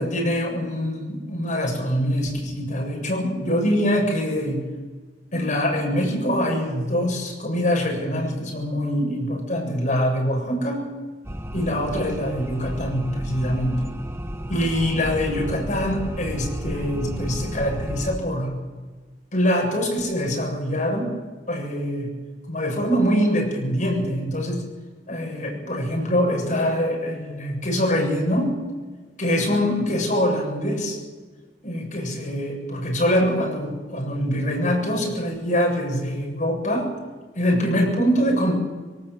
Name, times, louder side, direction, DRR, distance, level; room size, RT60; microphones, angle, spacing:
voice 1, 0.0-4.7 5.3-10.9 11.5-13.8 14.5-18.5 19.3-21.1 21.5-22.1 22.5-24.6 25.1-28.6 29.2-31.0 31.6-36.9 37.3-38.5, equal, 45° left, 0 dB, 7.7 m, -24 dB
sound 1, 11.2-18.1, equal, 15° right, 1.4 m, -32 dB
23.0 x 19.0 x 8.1 m, 1.3 s
head